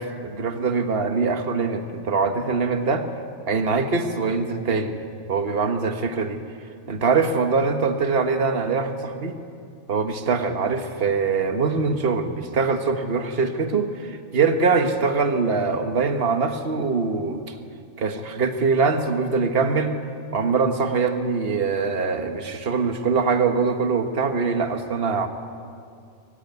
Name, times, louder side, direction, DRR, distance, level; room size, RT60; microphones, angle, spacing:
voice 1, 0.0-3.1 3.5-5.0 5.3-6.4 6.9-9.3 9.9-17.5 18.0-20.0 20.3-25.3, right 4 dB, 45° right, 6 dB, 1.6 m, -23 dB
22.0 x 16.5 x 9.5 m, 2.4 s
omnidirectional pair, 1.4 m